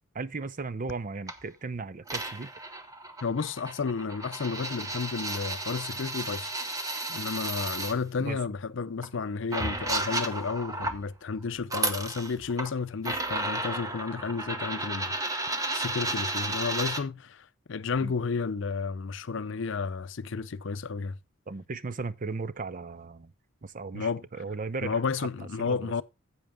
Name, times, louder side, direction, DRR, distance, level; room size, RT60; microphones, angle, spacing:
voice 1, 0.1-2.5 6.9-7.1 8.2-8.4 18.0-18.1 21.5-23.3 23.6-25.3 25.6-25.9, right 4 dB, 40° right, 0.6 m, -36 dB
sound 1, 1.3-1.4 2.1-7.9 9.0-9.1 9.5-11.0 11.6-12.7 13.1-17.0, right 2 dB, 15° right, 1.0 m, -33 dB
voice 2, 3.2-6.5 7.1-21.2 23.9-24.2 24.8-26.0, left 5 dB, 60° left, 0.5 m, -32 dB
10.5 x 8.0 x 3.5 m
head